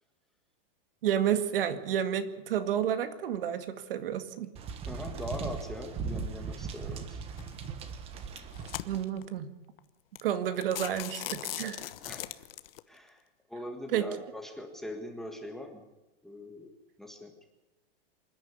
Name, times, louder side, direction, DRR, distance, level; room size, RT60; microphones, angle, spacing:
voice 1, 1.0-4.5 8.9-9.5 10.2-11.9 13.9-14.1, right 9 dB, 65° right, 10 dB, 2.1 m, -30 dB
sound 1, 4.6-9.0, right 5 dB, 20° right, 1.3 m, -38 dB
voice 2, 4.9-7.2 12.1-12.3 12.9-13.2 13.5-15.8 16.2-16.7 17.0-17.3, left 1 dB, ahead, 3 dB, 1.6 m, -41 dB
sound 2, 7.4-7.7 8.3-9.2 9.8-9.9 10.2-10.3 10.6-12.8, left 13 dB, 70° left, 1.2 m, -39 dB
26.5 x 10.5 x 9.6 m, 1.0 s
supercardioid pair, 170°, 30 cm